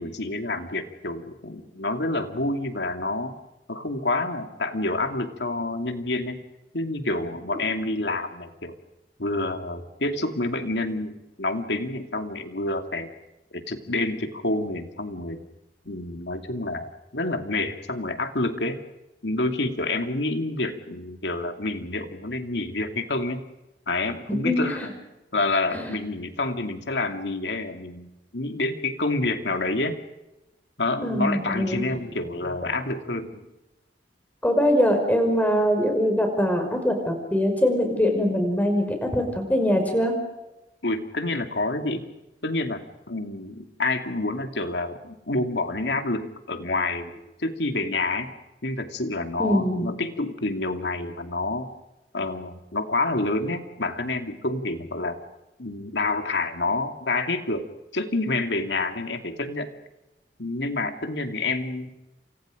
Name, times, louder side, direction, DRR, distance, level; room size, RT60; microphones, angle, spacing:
voice 1, 0.0-3.3 3.7-6.4 6.7-8.7 9.2-13.1 13.5-15.4 15.8-18.8 19.2-23.4 23.9-24.8 25.3-30.0 30.8-33.3 40.8-42.1 42.4-42.8 43.1-47.1 47.4-48.3 48.6-51.7 52.1-55.2 55.6-57.7 57.9-59.7 60.4-61.9, left 2 dB, 75° left, 6 dB, 2.6 m, -28 dB
voice 2, 24.4-24.9 25.7-25.8 31.0-31.8 34.4-40.1 49.4-49.9, equal, 10° left, 4 dB, 5.5 m, -22 dB
29.0 x 27.5 x 5.2 m, 0.99 s
head